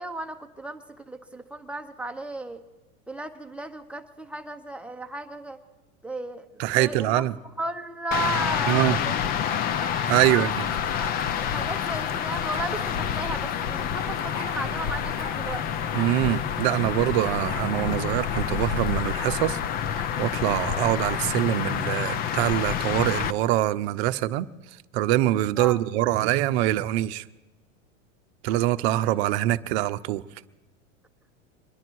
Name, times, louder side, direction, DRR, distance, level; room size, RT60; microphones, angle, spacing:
voice 1, 0.0-2.6 3.1-5.6 6.0-6.5 6.8-7.3 7.6-9.5 10.3-15.7 25.5-25.8 29.1-29.2, right 2 dB, 5° right, 0.9 m, -35 dB
voice 2, 6.6-7.3 8.7-9.0 10.1-10.5 15.9-19.6 20.2-24.5 24.9-27.2 28.4-30.2, right 15 dB, 50° right, 0.8 m, -24 dB
sound 1, 8.1-23.3, left 8 dB, 25° left, 0.5 m, -28 dB
sound 2, 9.4-10.4 11.0-11.2 12.5-13.0 13.9-14.0 14.1-14.5 15.2-15.4 15.9-16.1 16.4-16.5 17.5-18.0 18.3-18.5 19.2-19.4 20.6-21.2, left 2 dB, 45° left, 6.9 m, -39 dB
25.0 x 11.0 x 4.7 m
supercardioid pair, 130°, 41 cm